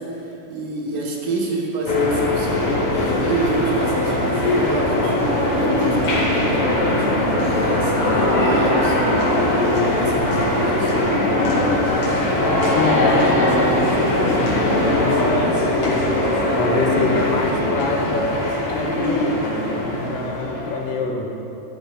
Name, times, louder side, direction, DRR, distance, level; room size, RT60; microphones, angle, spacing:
voice 1, 0.0-9.4 9.6-11.3, right 2 dB, 75° right, -1 dB, 3.3 m, -28 dB
sound 1, 1.8-20.9, left 1 dB, 45° left, 2.7 m, -20 dB
voice 2, 12.6-16.0 16.5-21.5, left 3 dB, 75° left, 1 dB, 2.7 m, -26 dB
12.5 x 10.5 x 5.2 m, 2.9 s
omnidirectional pair, 4.1 m